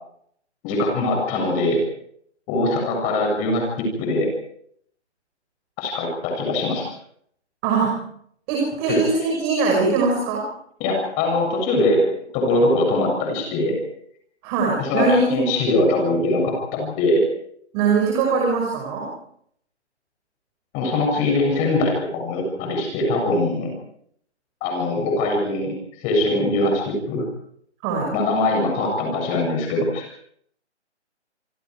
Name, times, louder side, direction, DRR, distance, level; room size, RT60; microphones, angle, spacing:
voice 1, 0.6-1.8 2.5-4.3 5.8-6.9 8.9-9.0 10.8-12.0 12.3-13.8 14.8-17.3 20.7-23.7 24.6-27.2 28.1-30.1, left 2 dB, 20° left, 1 dB, 7.5 m, -22 dB
voice 2, 7.6-8.0 8.5-10.4 14.4-15.4 17.7-19.1 27.8-28.1, right 4 dB, 25° right, -1 dB, 6.0 m, -21 dB
28.5 x 26.0 x 4.9 m, 0.68 s
hypercardioid pair, 155°, 35 cm